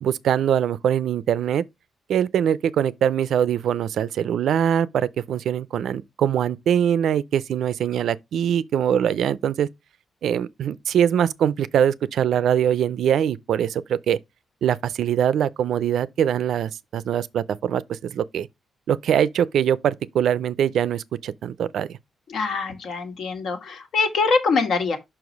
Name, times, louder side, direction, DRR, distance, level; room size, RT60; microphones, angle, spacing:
voice 1, 0.0-1.6 2.1-9.7 10.2-14.2 14.6-18.5 18.9-22.0, right 9 dB, 75° right, 0.4 m, -22 dB
voice 2, 22.3-25.0, left 4 dB, 65° left, 1.6 m, -23 dB
5.8 x 4.8 x 5.2 m
wide cardioid pair, 145°, 0 cm